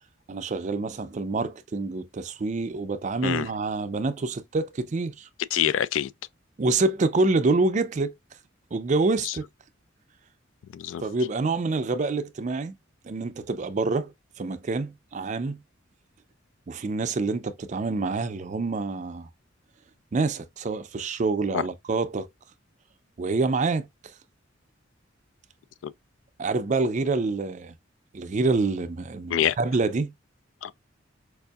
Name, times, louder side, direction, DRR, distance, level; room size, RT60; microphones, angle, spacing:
voice 1, 0.3-5.3 6.6-8.1 8.7-9.4 11.0-12.8 13.0-15.6 16.7-19.3 20.1-22.3 23.2-24.1 26.4-27.7 28.1-30.1, right 3 dB, 40° right, 0.4 m, -27 dB
voice 2, 5.5-6.1 9.3-9.4 10.7-11.0 21.5-21.6 25.8-25.9 29.3-29.6 30.6-30.7, left 10 dB, 75° left, 0.3 m, -25 dB
4.7 x 2.6 x 2.3 m
head